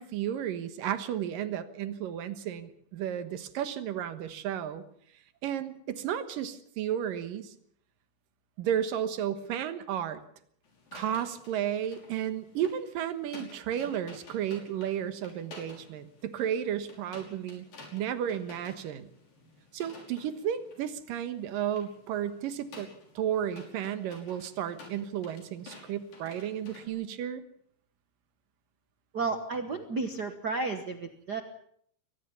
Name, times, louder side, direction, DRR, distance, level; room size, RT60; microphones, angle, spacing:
voice 1, 0.0-4.8 5.4-7.5 8.6-10.2 10.9-17.6 17.9-19.1 19.7-22.9 23.2-27.4, right 9 dB, 85° right, 11 dB, 3.0 m, -33 dB
sound 1, 10.6-26.9, left 3 dB, 90° left, 7.3 m, -52 dB
voice 2, 29.1-31.4, right 3 dB, 70° right, 7 dB, 0.9 m, -32 dB
22.5 x 19.0 x 7.1 m, 0.65 s
omnidirectional pair, 3.8 m